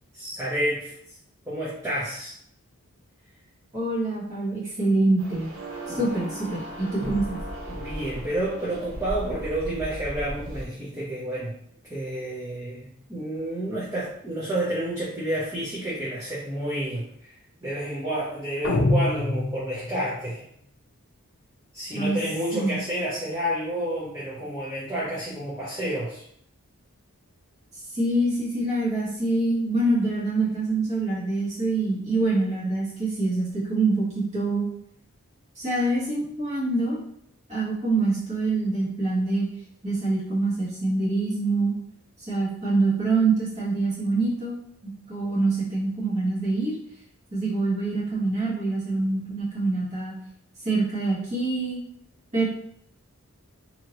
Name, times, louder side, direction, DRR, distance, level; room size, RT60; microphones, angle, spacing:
voice 1, 0.1-1.2 1.5-2.3 5.9-6.0 6.9-7.1 7.7-11.6 11.9-17.3 17.6-20.4 21.7-26.2, right 1 dB, 15° right, -9 dB, 0.6 m, -30 dB
voice 2, 3.7-5.5 5.9-7.4 21.9-22.2 22.5-22.8 27.9-34.7 35.6-37.0 37.5-39.5 39.8-41.7 42.3-44.6 44.8-46.7 47.3-50.1 50.6-51.8 52.3-52.5, right 2 dB, 30° right, -8 dB, 1.2 m, -25 dB
sound 1, 5.2-10.7, right 1 dB, 60° right, 0.7 m, -36 dB
sound 2, 18.6-20.1, left 2 dB, 55° left, 0.4 m, -24 dB
2.8 x 2.7 x 2.9 m, 0.68 s
head